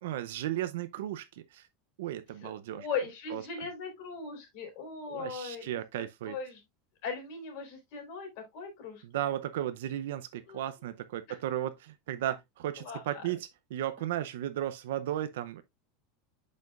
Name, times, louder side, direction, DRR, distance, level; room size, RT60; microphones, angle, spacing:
voice 1, 0.0-1.7 2.0-2.9 3.3-3.4 5.1-6.4 9.0-15.6, right 12 dB, 85° right, 0.6 m, -35 dB
voice 2, 2.4-5.8 6.3-6.6 7.0-9.0 10.5-10.6 11.3-11.4 12.8-13.0, left 5 dB, 50° left, 3.7 m, -39 dB
9.2 x 5.4 x 2.4 m
supercardioid pair, 175°, 0 cm